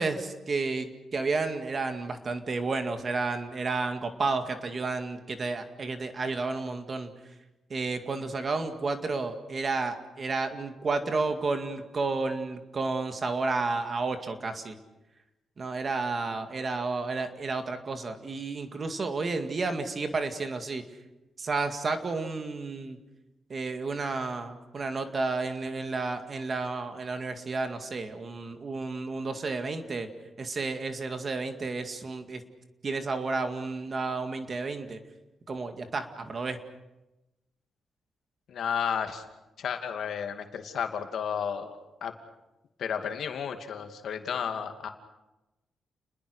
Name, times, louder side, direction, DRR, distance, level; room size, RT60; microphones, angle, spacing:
voice 1, 0.0-7.1 7.7-14.8 15.6-20.8 21.4-23.0 23.5-30.1 30.4-32.4 32.8-35.0 35.5-36.6, right 3 dB, 35° right, 7 dB, 2.1 m, -31 dB
voice 2, 38.5-39.2 39.6-41.7 42.0-42.1 42.8-44.9, left 7 dB, 65° left, 6 dB, 2.5 m, -32 dB
30.0 x 21.0 x 6.5 m, 1.0 s
wide cardioid pair, 160°, 0 cm